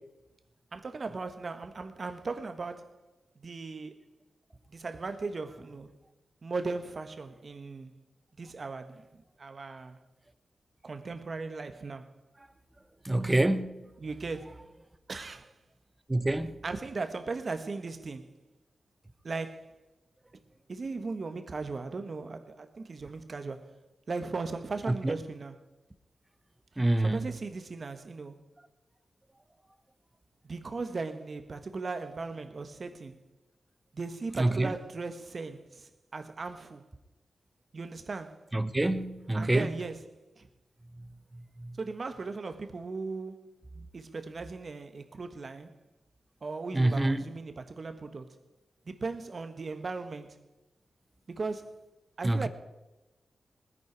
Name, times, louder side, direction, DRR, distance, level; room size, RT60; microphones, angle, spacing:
voice 1, 0.7-3.0 3.4-4.0 4.7-5.9 6.4-8.0 8.4-10.0 10.8-12.1 13.2-13.3 14.0-14.7 15.1-15.5 16.6-18.3 19.2-19.7 20.7-23.7 24.1-25.6 27.0-28.4 30.4-33.2 33.9-36.9 37.7-38.4 39.3-40.5 41.8-43.6 43.9-45.8 46.4-48.4 48.8-50.4 51.3-51.8 52.2-52.5, right 3 dB, 55° right, 1.4 m, -38 dB
voice 2, 13.0-13.8 16.1-16.5 25.0-25.1 26.8-27.2 34.4-34.7 38.5-39.7 41.6-41.7 46.7-47.2 52.2-52.5, right 1 dB, 20° right, 1.1 m, -26 dB
20.0 x 10.0 x 4.8 m
cardioid pair, 55°, 0 cm